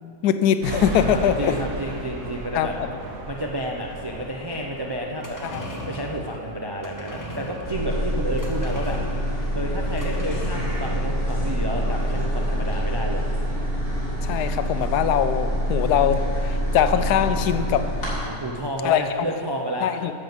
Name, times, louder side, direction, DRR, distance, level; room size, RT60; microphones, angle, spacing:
voice 1, 0.0-1.6 2.5-2.9 5.5-5.6 14.2-17.9 18.8-19.0 19.8-20.1, left 9 dB, 90° left, 11 dB, 1.1 m, -22 dB
sound 1, 0.6-9.2, right 1 dB, 80° right, 1.6 m, -37 dB
voice 2, 1.0-2.7 3.3-5.4 5.9-9.0 9.5-13.2 18.2-20.0, equal, 40° right, 0 dB, 0.3 m, -30 dB
sound 2, 5.0-13.7 14.0-14.1, left 1 dB, 15° left, 1.0 m, -39 dB
sound 3, 7.6-18.1, equal, 60° left, 3.3 m, -26 dB
10.5 x 5.5 x 7.7 m, 2.6 s
omnidirectional pair, 1.6 m